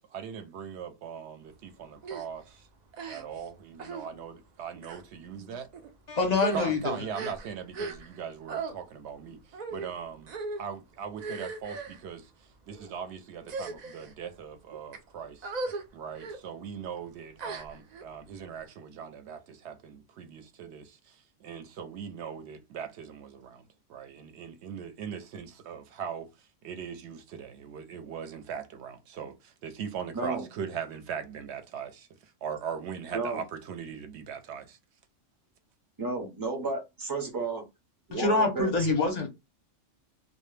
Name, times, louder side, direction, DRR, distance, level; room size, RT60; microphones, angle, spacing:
voice 1, 0.0-2.7 3.1-5.7 6.5-12.3 12.7-15.5 15.9-23.6 23.9-26.3 26.6-32.1 32.4-34.8, right 7 dB, 65° right, 0.8 m, -40 dB
sound 1, 2.0-2.3 2.9-3.5 3.8-4.1 4.8-5.0 5.7-5.9 6.3-8.2 8.5-8.7 9.5-9.9 10.3-10.6 11.2-12.0 12.7-12.9 13.4-14.1 14.7-15.0 15.4-15.8 16.1-16.4 17.4-18.0, right 3 dB, 85° right, 0.3 m, -38 dB
voice 2, 6.1-7.0 38.1-39.3, left 3 dB, 45° left, 0.6 m, -26 dB
voice 3, 30.1-30.4 33.1-33.4 36.0-37.6 38.1-38.9, right 3 dB, 25° right, 0.5 m, -32 dB
2.1 x 2.0 x 3.1 m
omnidirectional pair, 1.3 m